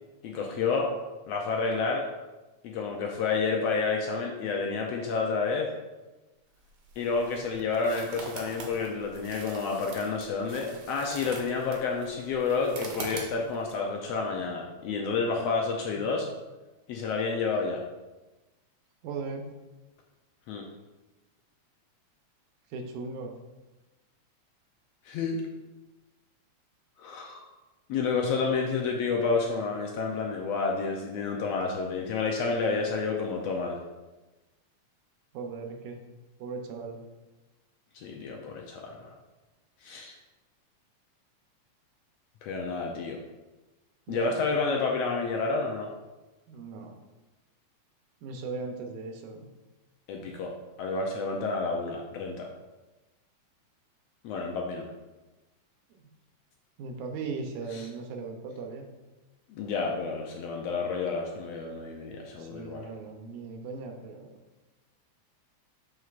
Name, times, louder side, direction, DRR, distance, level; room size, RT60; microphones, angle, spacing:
voice 1, 0.2-0.9 1.3-2.1 2.6-5.7 7.0-16.3 16.9-17.8 20.5-20.7 25.0-25.4 27.0-27.4 27.9-33.8 37.9-39.2 39.8-40.2 42.4-43.2 44.1-45.9 50.1-52.5 54.2-54.9 57.7-57.9 59.5-62.8, left 4 dB, 75° left, 0 dB, 1.5 m, -30 dB
sound 1, 6.5-13.7, right 3 dB, 65° right, 1.6 m, -44 dB
voice 2, 19.0-19.4 22.7-23.3 35.3-36.0 36.4-37.0 44.1-44.4 46.5-47.0 48.2-49.5 56.8-58.9 62.4-64.4, right 4 dB, 90° right, 4 dB, 2.2 m, -38 dB
6.9 x 6.1 x 2.5 m, 1.1 s
omnidirectional pair, 3.4 m